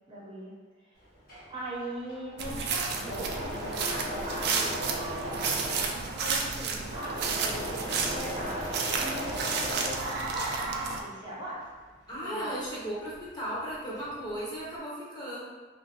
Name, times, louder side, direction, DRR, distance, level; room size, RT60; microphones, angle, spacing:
voice 1, 0.1-0.5 0.8-1.0 1.5-11.6 12.2-12.5, right 1 dB, 25° right, -6 dB, 0.7 m, -40 dB
Engine / Mechanisms, 1.0-10.6 11.0-13.3 13.6-14.3, equal, 55° left, 1.1 m, -38 dB
sound 1, 2.4-11.0, right 4 dB, 60° right, 0.3 m, -32 dB
voice 2, 12.1-15.4, right 1 dB, 25° left, -7 dB, 0.7 m, -36 dB
2.5 x 2.2 x 3.7 m, 1.3 s
head